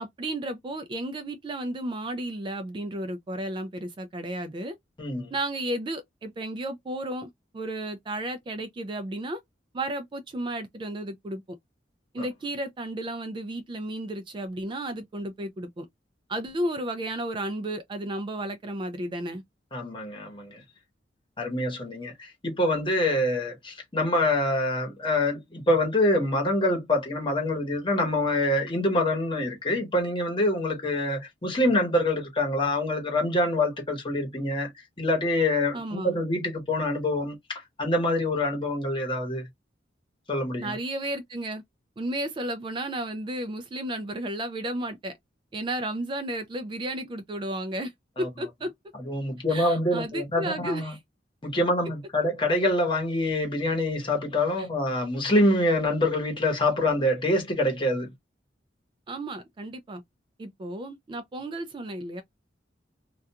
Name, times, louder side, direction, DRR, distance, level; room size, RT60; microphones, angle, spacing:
voice 1, 0.0-4.7 5.3-9.4 9.7-11.4 12.1-15.9 16.3-19.4 35.7-36.2 40.6-41.6 42.0-45.1 45.5-47.9 48.2-48.7 49.5-51.0 54.6-54.7 59.1-60.0 60.4-62.2, right 1 dB, 25° right, 0.3 m, -33 dB
voice 2, 5.0-5.3 12.2-12.3 19.7-20.6 21.4-39.5 40.3-40.7 48.2-48.3 49.0-50.9 51.4-58.1, left 1 dB, 30° left, 1.0 m, -26 dB
2.4 x 2.2 x 2.7 m
head